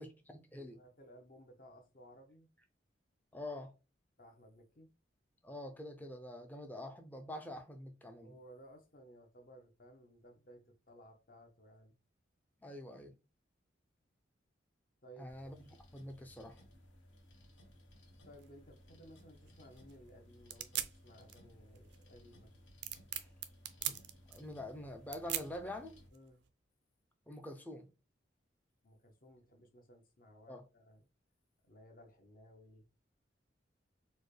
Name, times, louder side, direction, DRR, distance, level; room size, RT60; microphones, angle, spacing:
voice 1, 0.0-0.8 3.3-3.7 5.4-8.3 12.6-13.1 15.2-16.6 23.1-23.3 23.9-26.0 27.3-27.9 30.5-30.6, left 1 dB, 10° left, 0.5 m, -46 dB
voice 2, 0.7-2.5 4.2-4.9 8.2-12.0 15.0-15.5 18.2-22.6 26.1-26.4 28.8-31.1 31.6-32.9, equal, 45° left, 0.9 m, -59 dB
sound 1, 15.3-26.1, equal, 90° left, 1.2 m, -60 dB
sound 2, 18.4-26.5, right 12 dB, 60° right, 0.4 m, -44 dB
4.1 x 2.2 x 3.2 m
head